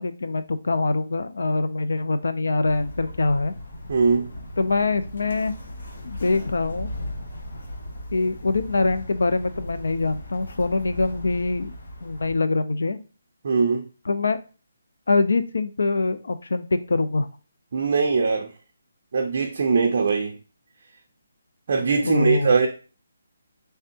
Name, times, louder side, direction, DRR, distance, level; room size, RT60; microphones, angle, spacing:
voice 1, 0.0-3.5 4.6-5.5 6.0-6.9 8.1-11.7 12.0-13.0 14.1-14.4 15.1-17.3 21.9-22.5, left 3 dB, 75° left, 11 dB, 0.4 m, -24 dB
sound 1, 2.6-12.3, left 1 dB, 55° left, 0.7 m, -37 dB
voice 2, 3.9-4.3 13.4-13.8 17.7-18.5 19.1-20.4 21.7-22.7, right 4 dB, 35° right, 2 dB, 0.4 m, -21 dB
3.4 x 3.3 x 2.8 m, 0.34 s
hypercardioid pair, 180°, 0 cm